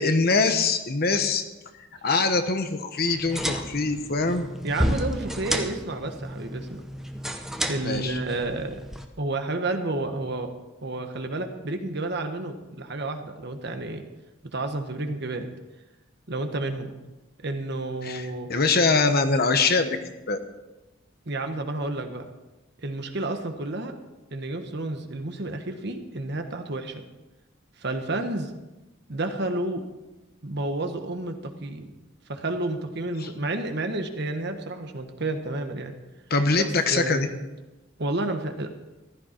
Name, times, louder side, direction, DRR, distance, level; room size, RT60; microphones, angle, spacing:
voice 1, 0.0-1.4 1.8-4.5 7.8-8.2 18.0-20.0 20.3-20.4 33.2-33.3 36.3-37.3, left 3 dB, 50° left, 7 dB, 1.1 m, -23 dB
sound 1, 3.1-9.1, equal, ahead, 0.8 m, -31 dB
voice 2, 4.6-6.8 7.6-8.8 9.2-10.5 10.8-14.0 14.4-15.5 16.3-16.9 17.4-18.5 21.3-22.3 22.8-24.0 24.3-27.0 27.8-28.5 29.1-29.8 30.4-31.8 32.3-35.9 36.6-37.3 38.0-38.7, right 2 dB, 55° right, 6 dB, 1.3 m, -30 dB
15.0 x 12.5 x 4.5 m, 1.1 s
head